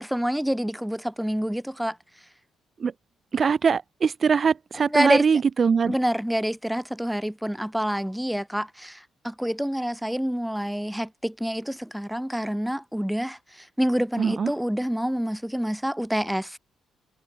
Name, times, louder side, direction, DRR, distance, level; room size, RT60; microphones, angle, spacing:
voice 1, 0.0-1.9 4.9-5.2 5.8-9.0 9.2-13.4 13.8-16.6, equal, ahead, 0.9 m, -27 dB
voice 2, 3.3-5.9 14.2-14.5, right 6 dB, 45° right, 1.9 m, -22 dB
cardioid pair, 90°, 0 cm